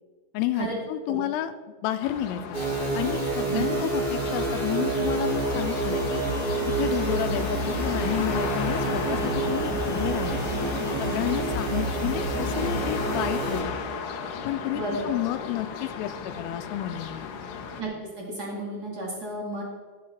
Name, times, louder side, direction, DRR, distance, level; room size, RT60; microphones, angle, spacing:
voice 1, 0.3-1.5 1.8-2.6 2.9-6.2 6.8-10.4 11.0-13.8 14.5-17.3, left 13 dB, 90° left, 9 dB, 3.3 m, -31 dB
sound 1, 2.0-17.8, left 6 dB, 70° left, 2.6 m, -35 dB
sound 2, 2.5-13.6, right 3 dB, 20° right, 4.2 m, -28 dB
voice 2, 14.7-15.0 17.8-17.9 18.2-19.6, right 2 dB, 70° right, -3 dB, 0.9 m, -32 dB
15.0 x 9.4 x 4.3 m, 1.4 s
omnidirectional pair, 5.8 m